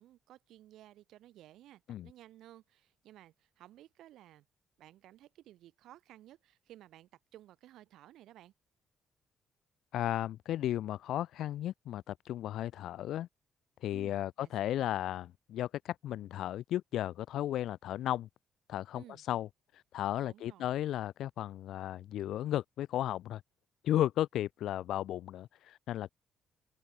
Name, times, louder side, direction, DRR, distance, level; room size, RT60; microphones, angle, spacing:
voice 1, 0.0-4.4 4.8-8.5 13.9-14.9 18.9-19.2 20.2-20.8, right 13 dB, 85° right, 4.7 m, -56 dB
voice 2, 9.9-13.3 13.8-18.3 18.7-19.5 19.7-23.4 23.8-26.1, left 12 dB, 80° left, 0.7 m, -34 dB
open air
cardioid pair, 90°, 0 cm